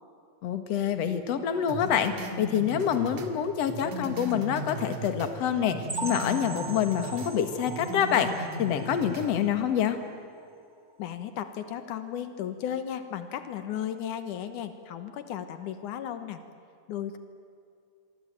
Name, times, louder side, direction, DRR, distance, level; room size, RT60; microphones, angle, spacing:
voice 1, 0.4-10.0, left 8 dB, 60° left, 8 dB, 2.6 m, -27 dB
sound 1, 1.7-5.4 5.7-7.3 7.7-9.3, right 1 dB, 60° right, 3.1 m, -38 dB
sound 2, 5.9-9.5 9.9-10.1 10.4-10.5 11.0-11.1, right 3 dB, 15° right, 1.0 m, -40 dB
voice 2, 11.0-16.4 16.9-17.2, left 9 dB, 85° left, 9 dB, 2.7 m, -35 dB
27.5 x 23.5 x 8.9 m, 2.5 s
omnidirectional pair, 3.5 m